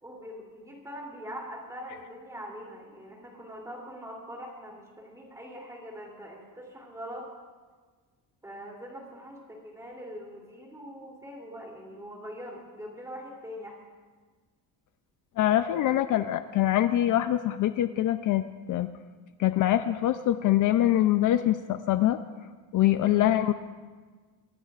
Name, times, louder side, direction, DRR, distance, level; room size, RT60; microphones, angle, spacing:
voice 1, 0.0-7.3 8.4-13.8, equal, 10° right, -2 dB, 3.1 m, -43 dB
voice 2, 15.4-18.9 19.4-22.2 22.7-23.5, left 13 dB, 60° left, 10 dB, 0.5 m, -24 dB
24.0 x 19.5 x 2.5 m, 1.4 s
cardioid pair, 180°, 36 cm